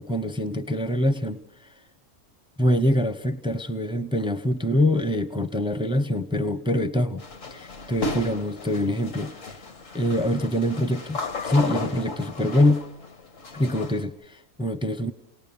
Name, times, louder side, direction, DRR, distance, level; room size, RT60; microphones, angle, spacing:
voice 1, 0.0-1.7 2.6-7.2 7.5-9.6 9.9-11.2 11.4-12.8 13.5-15.1, left 1 dB, 5° right, 12 dB, 0.4 m, -24 dB
sound 1, 7.2-14.0, left 3 dB, 80° left, 2.0 m, -35 dB
28.5 x 19.0 x 6.9 m, 0.87 s
omnidirectional pair, 1.3 m